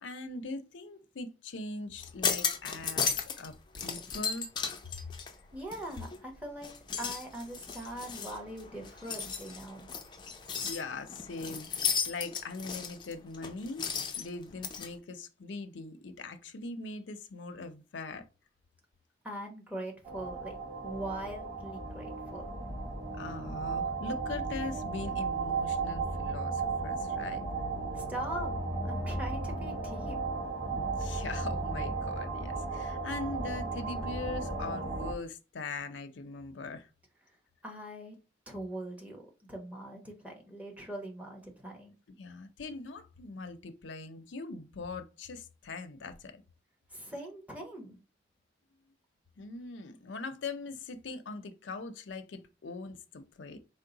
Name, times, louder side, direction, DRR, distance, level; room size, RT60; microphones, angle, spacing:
voice 1, 0.0-4.5 10.6-13.9 14.2-18.2 23.2-27.5 30.7-36.9 42.2-46.4 49.4-53.6, left 3 dB, 80° left, 0.6 m, -41 dB
sound 1, 2.0-3.5 3.7-6.2 6.6-14.9, left 6 dB, 25° left, 0.4 m, -35 dB
voice 2, 5.5-6.7 7.0-9.9 19.2-20.6 20.8-22.5 27.9-28.5 28.8-30.2 37.6-38.2 38.5-39.2 39.5-41.9 46.9-48.0, right 1 dB, 10° right, 0.9 m, -41 dB
sound 2, 20.0-35.1, right 3 dB, 30° right, 1.3 m, -35 dB
4.5 x 2.1 x 3.9 m
head